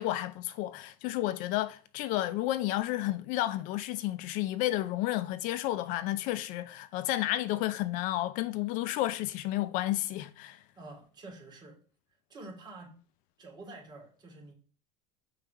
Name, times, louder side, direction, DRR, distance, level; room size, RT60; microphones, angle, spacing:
voice 1, 0.0-10.6, left 15 dB, 60° left, 0.5 m, -31 dB
voice 2, 10.7-11.8 12.3-13.0 13.4-14.5, right 2 dB, 30° right, 2.6 m, -48 dB
5.4 x 3.3 x 5.7 m
supercardioid pair, 120°, 15 cm